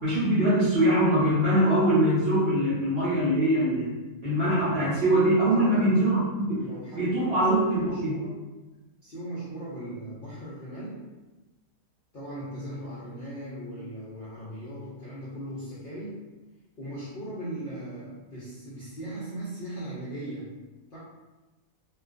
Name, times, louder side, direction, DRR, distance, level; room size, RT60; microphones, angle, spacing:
voice 1, 0.0-3.9 4.2-6.7 7.0-8.2, right 1 dB, 55° right, -10 dB, 0.7 m, -23 dB
voice 2, 5.5-6.2 6.6-7.4 7.7-8.4 9.0-11.1 12.1-16.2 16.8-20.5 20.9-21.0, right 1 dB, 60° left, -10 dB, 0.6 m, -38 dB
2.3 x 2.3 x 2.4 m, 1.1 s
omnidirectional pair, 1.6 m